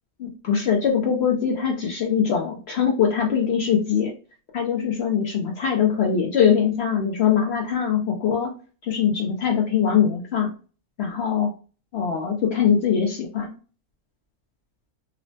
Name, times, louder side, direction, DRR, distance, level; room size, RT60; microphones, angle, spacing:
voice 1, 0.2-4.1 4.5-8.5 8.8-10.5 11.0-11.5 11.9-13.5, left 7 dB, 70° left, 0 dB, 0.6 m, -22 dB
3.0 x 2.0 x 2.7 m, 0.36 s
omnidirectional pair, 1.5 m